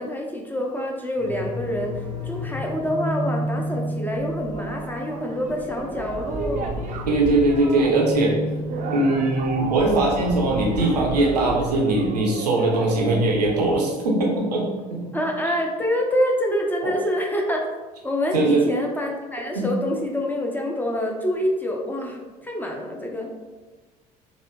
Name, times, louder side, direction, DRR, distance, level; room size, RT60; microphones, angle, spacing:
voice 1, 0.0-1.9 2.2-6.8 15.1-17.6 18.0-23.3, equal, 10° left, 0 dB, 0.6 m, -26 dB
sound 1, 1.2-14.0, equal, 25° left, 1.3 m, -33 dB
sound 2, 4.2-13.8, right 3 dB, 40° right, 0.5 m, -33 dB
voice 2, 7.1-8.3 8.9-15.2 16.8-16.9 18.3-18.6 19.5-19.6, right 2 dB, 80° right, -2 dB, 0.7 m, -21 dB
4.3 x 2.7 x 2.3 m, 1.2 s
figure-of-eight pair, 60°, 20 cm